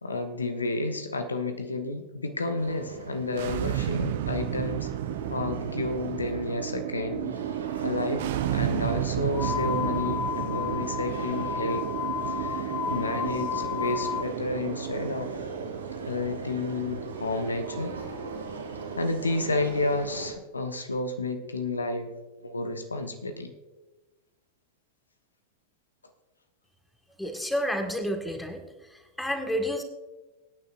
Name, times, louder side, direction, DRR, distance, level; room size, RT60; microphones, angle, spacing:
voice 1, 0.0-4.9 5.3-7.4 7.8-8.2 8.5-11.9 12.3-15.3 16.1-18.0 19.0-22.1 22.4-23.5, left 2 dB, 75° left, 7 dB, 1.1 m, -31 dB
sound 1, 2.6-20.3, right 4 dB, 70° right, 2.2 m, -39 dB
sound 2, 3.3-18.3, right 13 dB, 55° right, 0.5 m, -33 dB
sound 3, 9.3-14.3, left 9 dB, 25° left, 0.7 m, -32 dB
voice 2, 27.2-28.6 29.2-29.8, equal, 5° left, 4 dB, 1.6 m, -29 dB
24.0 x 9.5 x 2.5 m, 1.2 s
figure-of-eight pair, 90°, 0 cm